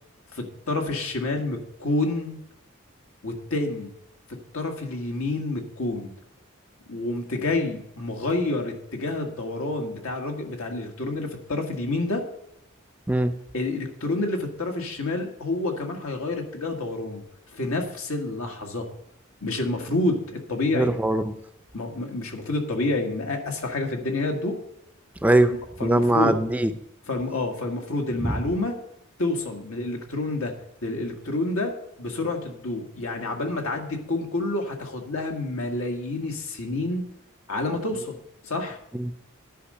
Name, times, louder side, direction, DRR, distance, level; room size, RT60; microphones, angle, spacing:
voice 1, 0.3-2.4 3.2-3.9 4.3-6.1 6.9-12.2 13.5-17.2 17.5-18.9 19.4-21.0 21.7-24.6 25.4-26.4 27.1-28.8 29.2-30.5 30.8-31.7 32.0-37.0 37.5-38.2 38.4-38.8, left 2 dB, 90° left, 2 dB, 1.7 m, -28 dB
voice 2, 20.7-21.4 25.2-25.5 25.8-26.7 28.2-28.4 38.9-39.2, right 1 dB, 5° right, 10 dB, 0.4 m, -21 dB
10.0 x 5.2 x 7.6 m, 0.78 s
head